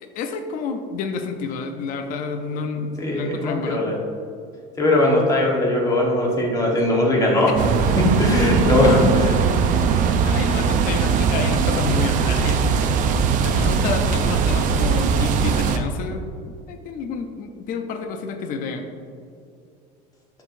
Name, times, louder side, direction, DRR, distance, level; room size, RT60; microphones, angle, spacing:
voice 1, 0.0-3.8 8.8-9.4 10.2-12.6 13.4-18.9, left 5 dB, 45° left, 6 dB, 0.6 m, -29 dB
voice 2, 3.0-4.0 4.8-7.5 8.0-9.4, left 1 dB, 15° left, -2 dB, 1.3 m, -19 dB
sound 1, 7.6-15.8, right 6 dB, 40° right, 0.5 m, -20 dB
12.0 x 4.6 x 2.6 m, 2.4 s
cardioid pair, 155°, 20 cm